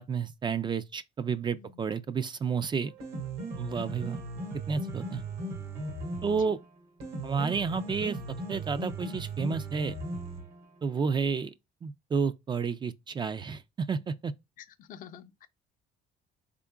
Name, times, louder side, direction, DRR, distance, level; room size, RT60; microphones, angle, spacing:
voice 1, 0.0-2.9 3.6-4.2 4.7-5.2 6.2-6.6 7.2-8.2 8.5-9.9 10.8-11.5 11.8-14.3, right 5 dB, 25° right, 0.3 m, -31 dB
Piano, 2.8-10.8, right 2 dB, 75° right, 1.6 m, -37 dB
voice 2, 14.8-15.5, left 8 dB, 55° left, 0.5 m, -49 dB
3.7 x 3.6 x 2.3 m
cardioid pair, 110°, 17 cm